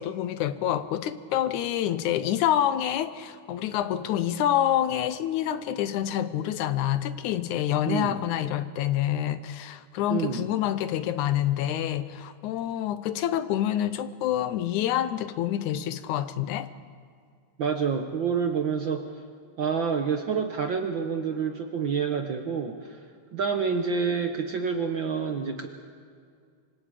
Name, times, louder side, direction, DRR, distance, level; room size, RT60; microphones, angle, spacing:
voice 1, 0.0-16.7, left 11 dB, 85° left, 13 dB, 2.3 m, -27 dB
voice 2, 7.9-8.2 10.1-10.4 17.6-19.0 19.6-23.0 23.3-25.7, right 6 dB, 60° right, 5 dB, 1.3 m, -28 dB
26.5 x 25.0 x 5.0 m, 2.2 s
omnidirectional pair, 3.4 m